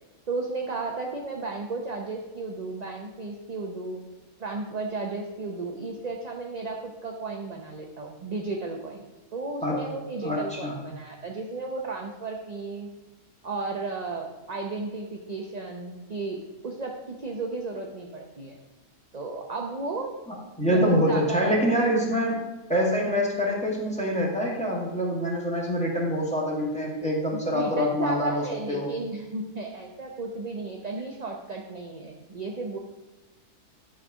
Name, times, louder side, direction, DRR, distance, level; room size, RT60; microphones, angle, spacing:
voice 1, 0.3-4.0 4.4-9.0 9.3-12.9 13.4-16.4 16.6-18.6 19.1-20.2 20.7-21.6 22.1-22.3 27.3-32.8, right 3 dB, 35° right, 1 dB, 0.7 m, -34 dB
voice 2, 10.2-10.8 20.6-28.9, equal, 5° left, -4 dB, 2.0 m, -25 dB
11.0 x 4.1 x 6.2 m, 1.1 s
omnidirectional pair, 1.6 m